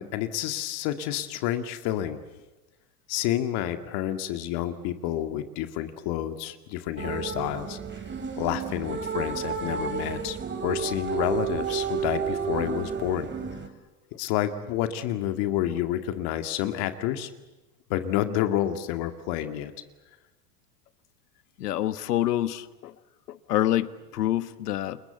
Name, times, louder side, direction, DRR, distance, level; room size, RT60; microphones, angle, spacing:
voice 1, 0.0-2.2 3.1-7.8 8.4-10.4 10.6-13.3 14.2-17.3 17.9-19.7, left 12 dB, 55° left, 8 dB, 2.1 m, -29 dB
sound 1, 7.0-13.7, right 6 dB, 25° right, 4.0 m, -31 dB
voice 2, 21.6-22.9 23.3-25.0, left 13 dB, 80° left, 15 dB, 1.3 m, -27 dB
30.0 x 22.0 x 8.2 m, 1.1 s
hypercardioid pair, 95°, 47 cm